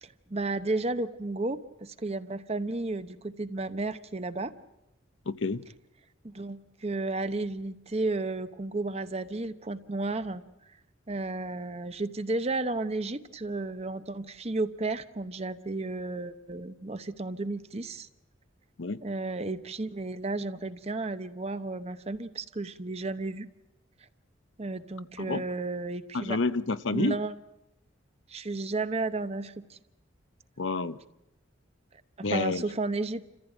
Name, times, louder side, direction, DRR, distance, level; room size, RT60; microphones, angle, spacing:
voice 1, 0.0-4.5 6.2-10.4 11.1-18.1 19.0-23.5 24.6-26.4 26.9-27.3 28.3-29.8 32.2-33.2, right 2 dB, 30° right, 11 dB, 0.8 m, -33 dB
voice 2, 5.3-5.6 18.8-19.0 25.2-25.4 26.1-27.2 30.6-31.0 32.2-32.6, left 3 dB, 70° left, 13 dB, 0.7 m, -29 dB
28.5 x 15.0 x 9.0 m, 0.90 s
head